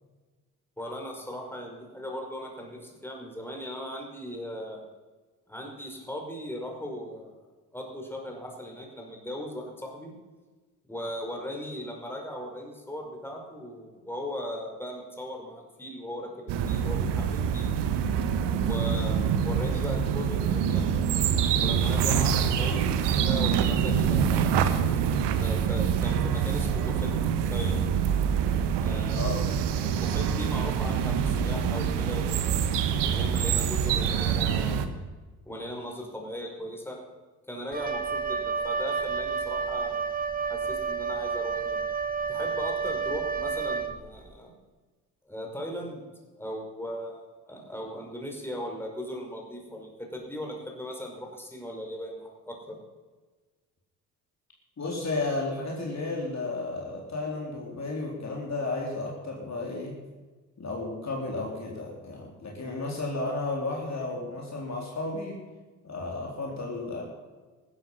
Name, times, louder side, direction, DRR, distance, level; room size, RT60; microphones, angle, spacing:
voice 1, 0.8-4.8 5.5-7.3 7.7-10.1 10.9-17.8 18.6-20.8 21.6-24.5 25.4-27.1 27.5-27.8 28.8-32.7 33.0-35.0 35.5-37.0 37.5-40.1 40.5-41.8 42.3-44.5 45.3-46.0 46.4-52.8, equal, 5° left, 0 dB, 5.4 m, -38 dB
sound 1, 16.5-34.9, right 7 dB, 60° right, 1.4 m, -25 dB
voice 2, 29.1-29.4 54.8-60.0 60.6-65.4 65.8-67.0, left 2 dB, 35° left, -2 dB, 3.9 m, -33 dB
Wind instrument woodwind instrument, 37.7-44.3, right 5 dB, 20° right, 1.3 m, -30 dB
15.0 x 12.5 x 5.6 m, 1.3 s
hypercardioid pair, 50°, 46 cm